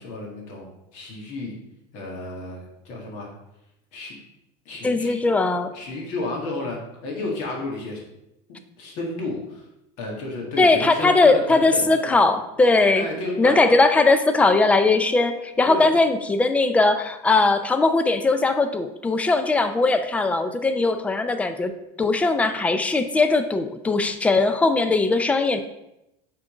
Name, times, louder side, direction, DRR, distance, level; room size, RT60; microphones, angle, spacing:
voice 1, 0.0-1.5 1.9-3.3 3.9-4.1 4.7-5.2 5.7-8.0 8.8-9.7 10.0-12.2 12.9-13.5 15.7-15.9, left 2 dB, 55° left, -1 dB, 1.9 m, -32 dB
voice 2, 4.8-5.7 10.6-13.1 13.4-21.7 22.0-25.6, left 3 dB, 10° left, 9 dB, 0.4 m, -19 dB
8.2 x 3.8 x 4.9 m, 0.87 s
cardioid pair, 165°, 15 cm